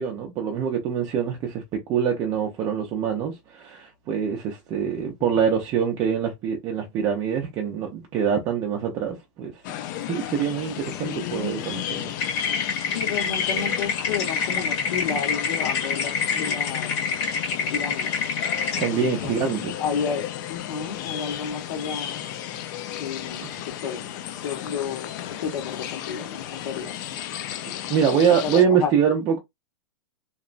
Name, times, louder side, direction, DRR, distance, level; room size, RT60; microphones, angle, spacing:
voice 1, 0.0-9.5 10.0-12.1 18.8-19.8 27.9-29.4, right 7 dB, 20° right, 0.4 m, -24 dB
voice 2, 5.0-5.3 10.9-11.6 12.9-16.9 17.7-18.2 19.0-19.4 19.8-22.3 23.0-24.1 24.4-25.1 25.4-27.0 28.1-28.9, left 6 dB, 80° left, 0.9 m, -31 dB
sound 1, 9.6-28.6, left 11 dB, 40° left, 0.4 m, -33 dB
sound 2, 12.2-18.9, left 5 dB, 65° left, 1.7 m, -27 dB
2.9 x 2.1 x 2.4 m
supercardioid pair, 165°, 15 cm